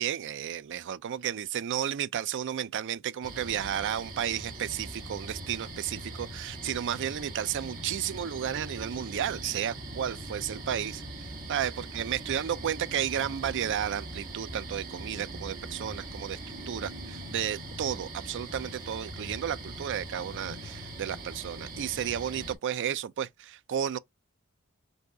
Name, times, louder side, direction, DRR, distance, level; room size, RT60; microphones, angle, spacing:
voice 1, 0.0-24.0, right 9 dB, 55° right, 0.4 m, -33 dB
sound 1, 3.2-22.5, right 1 dB, 40° right, 1.4 m, -41 dB
5.3 x 2.3 x 3.7 m
head